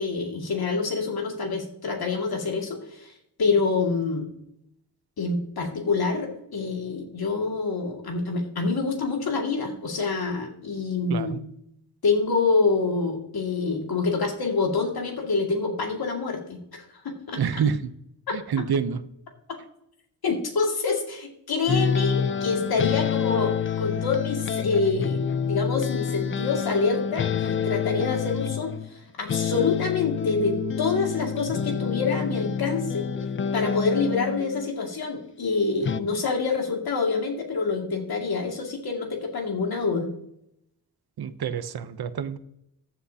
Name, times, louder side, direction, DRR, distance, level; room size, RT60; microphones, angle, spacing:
voice 1, 0.0-3.1 3.4-4.3 5.2-11.3 12.0-17.6 20.2-33.0 33.5-40.1, left 4 dB, 60° left, 1 dB, 2.4 m, -26 dB
voice 2, 17.4-17.8 18.3-19.0 41.2-42.4, right 7 dB, 65° right, 12 dB, 0.8 m, -27 dB
sound 1, 21.7-28.9 29.3-34.7 35.8-36.0, left 7 dB, 30° left, 0.4 m, -27 dB
14.5 x 7.8 x 2.9 m, 0.76 s
wide cardioid pair, 115°, 41 cm